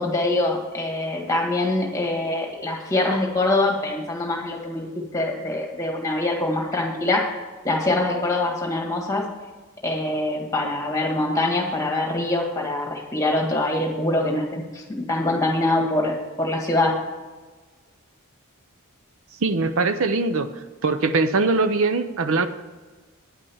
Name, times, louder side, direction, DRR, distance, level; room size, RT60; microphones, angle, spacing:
voice 1, 0.0-4.9 5.1-7.2 7.6-9.2 9.8-16.9, left 2 dB, 15° left, 1 dB, 1.8 m, -24 dB
voice 2, 19.4-20.5 20.8-22.5, right 3 dB, 65° right, 9 dB, 0.6 m, -21 dB
9.8 x 5.4 x 7.1 m, 1.3 s
head